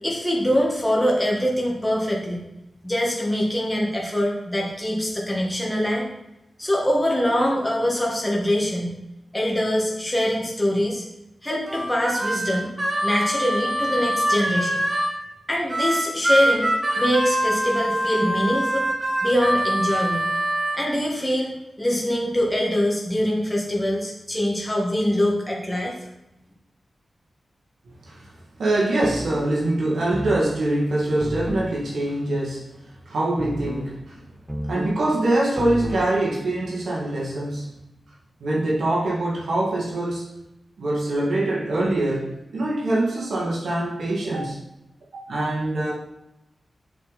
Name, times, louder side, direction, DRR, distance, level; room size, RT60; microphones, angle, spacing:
voice 1, 0.0-2.4 2.8-6.0 6.6-9.0 9.3-11.0 11.4-12.7 13.0-14.8 15.5-16.7 17.0-18.9 19.2-20.3 20.7-25.9, equal, 10° left, -3 dB, 1.8 m, -23 dB
Harmonica, 11.7-15.1 15.7-20.8, right 1 dB, 25° right, 1.4 m, -24 dB
voice 2, 28.6-32.7 33.1-34.2 34.7-37.7 38.4-40.3 40.8-44.6 45.3-45.9, right 1 dB, 90° right, -5 dB, 2.2 m, -24 dB
sound 1, 29.0-29.5 30.1-30.6 31.2-31.7 33.4-33.9 34.5-35.0 35.6-36.1, equal, 5° right, 0.9 m, -31 dB
7.3 x 6.6 x 4.2 m, 0.89 s
wide cardioid pair, 135°, 0 cm